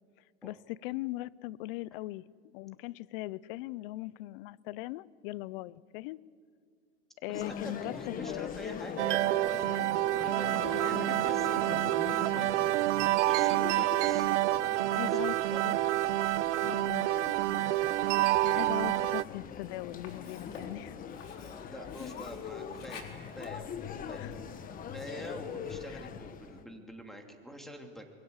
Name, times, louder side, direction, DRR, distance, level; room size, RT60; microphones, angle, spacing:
voice 1, 0.4-2.2 2.5-6.2 7.2-8.5 10.6-10.8 14.9-15.3 15.6-15.8 16.6-17.1 18.4-20.9 24.2-24.3 25.9-26.0, left 18 dB, 50° left, 23 dB, 0.6 m, -39 dB
sound 1, 7.3-26.6, left 7 dB, 25° left, 1.2 m, -42 dB
voice 2, 7.3-9.8 10.1-15.8 16.2-16.8 21.2-23.1 23.4-23.8 24.1-24.2 24.9-28.1, equal, ahead, 4 dB, 2.7 m, -47 dB
sound 2, 9.0-19.2, right 16 dB, 85° right, 0.6 m, -28 dB
Sink (filling or washing), 19.0-24.9, left 5 dB, 85° left, 4.1 m, -52 dB
28.0 x 22.0 x 8.1 m, 2.2 s
supercardioid pair, 135°, 35 cm